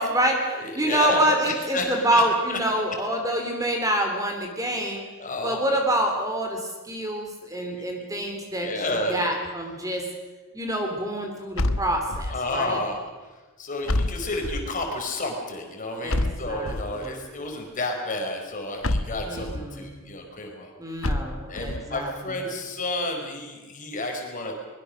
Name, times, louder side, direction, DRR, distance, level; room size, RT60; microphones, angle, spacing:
voice 1, 0.0-5.0 5.4-10.1 10.5-12.8 16.0-16.7 17.0-17.3 19.2-20.0 20.8-22.4, right 1 dB, 15° right, 3 dB, 3.0 m, -27 dB
voice 2, 0.6-2.2 2.5-2.6 5.2-5.6 7.6-8.1 8.6-9.3 12.3-13.1 13.6-20.7 21.5-24.6, left 2 dB, 40° left, 2 dB, 4.5 m, -31 dB
sound 1, 11.6-12.5 13.9-14.8 16.1-17.1 18.8-19.7 21.0-21.9, left 1 dB, 70° left, 1.2 m, -28 dB
23.5 x 21.5 x 6.5 m, 1.3 s
head